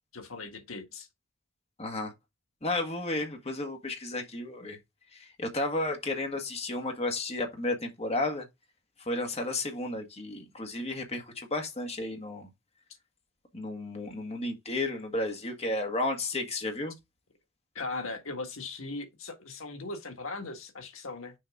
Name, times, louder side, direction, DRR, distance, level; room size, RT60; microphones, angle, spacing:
voice 1, 0.1-1.1 17.7-21.3, left 3 dB, 80° left, 1.7 m, -38 dB
voice 2, 1.8-2.1 2.6-4.8 5.1-8.5 9.0-12.5 13.5-17.0, left 2 dB, 30° left, 1.7 m, -33 dB
6.7 x 5.2 x 3.6 m
head